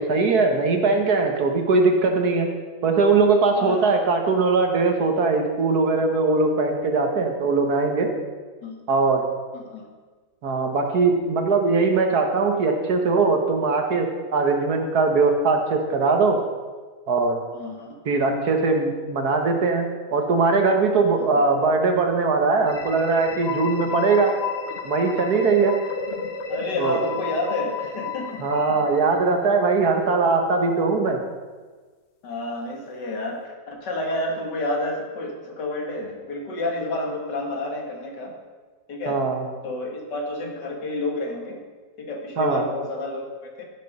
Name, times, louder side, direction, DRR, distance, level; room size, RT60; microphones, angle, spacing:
voice 1, 0.0-2.5 2.8-8.1 8.9-9.2 10.4-16.4 17.1-17.4 18.1-24.3 24.8-25.8 26.8-27.0 28.4-31.2 39.1-39.5 42.4-42.7, right 4 dB, 60° right, 4 dB, 1.7 m, -21 dB
voice 2, 3.5-4.0 8.6-8.8 9.5-9.9 17.5-18.0 21.2-21.4 26.5-28.8 32.2-38.3 38.9-39.2 39.6-41.6 42.0-43.7, left 2 dB, 75° left, 1 dB, 2.4 m, -30 dB
sound 1, 22.6-29.4, left 5 dB, 45° left, 1.2 m, -32 dB
15.5 x 6.7 x 5.4 m, 1.4 s
omnidirectional pair, 1.9 m